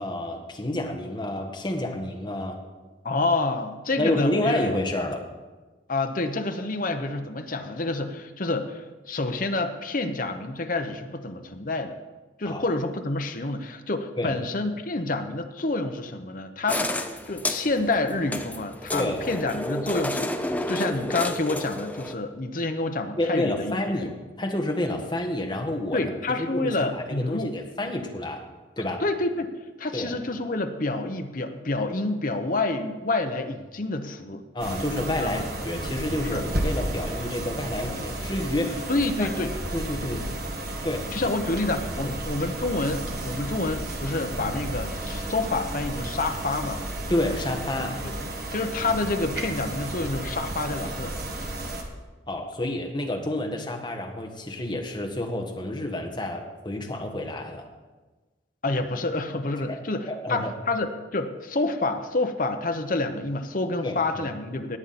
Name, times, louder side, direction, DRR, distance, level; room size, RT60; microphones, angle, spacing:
voice 1, 0.0-2.6 4.0-5.2 12.5-12.6 14.2-14.4 18.9-19.2 23.2-24.1 24.4-28.4 28.8-29.0 29.9-30.1 34.5-38.9 39.2-39.3 39.7-40.3 40.8-41.3 42.0-42.1 47.1-48.0 52.3-57.6 59.7-60.5 63.8-64.3, left 1 dB, 25° left, 2 dB, 1.5 m, -29 dB
voice 2, 3.0-4.7 5.9-12.0 12.4-16.9 17.3-24.1 25.9-27.5 29.0-29.5 29.8-34.4 35.2-35.5 36.2-36.4 38.9-39.6 41.1-46.8 48.0-48.1 48.5-51.2 58.6-64.8, left 2 dB, 45° left, 6 dB, 1.0 m, -28 dB
sound 1, 16.7-22.2, left 1 dB, 10° left, 0.6 m, -31 dB
sound 2, 34.6-51.8, right 1 dB, 55° right, 1.7 m, -33 dB
18.5 x 8.5 x 4.3 m, 1.2 s
head